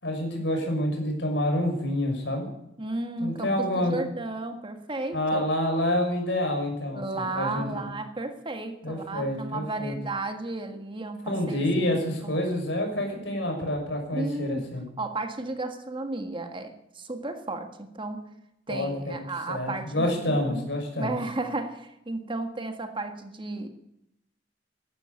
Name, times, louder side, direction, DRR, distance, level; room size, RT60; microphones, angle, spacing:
voice 1, 0.0-2.5 3.2-4.0 5.1-7.8 8.8-9.9 11.3-14.8 18.7-19.1 19.5-21.1, left 1 dB, 70° left, 3 dB, 6.1 m, -28 dB
voice 2, 2.8-5.4 6.9-11.9 12.2-12.5 14.1-14.7 15.0-18.3 18.7-20.7 20.9-23.7, right 2 dB, 30° right, 6 dB, 1.7 m, -33 dB
14.0 x 12.0 x 8.4 m, 0.83 s
head